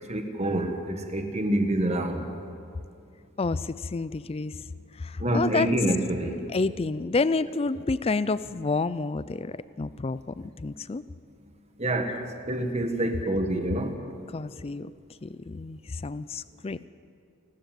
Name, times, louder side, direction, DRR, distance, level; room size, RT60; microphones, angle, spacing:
voice 1, 0.0-2.3 5.2-6.4 11.8-12.2 12.5-13.9, right 1 dB, 30° right, 5 dB, 1.7 m, -27 dB
voice 2, 3.4-4.6 5.0-5.7 6.5-11.0 12.1-12.3 14.3-14.9 15.2-16.8, left 3 dB, 25° left, 16 dB, 0.4 m, -29 dB
28.5 x 12.5 x 7.6 m, 2.4 s
head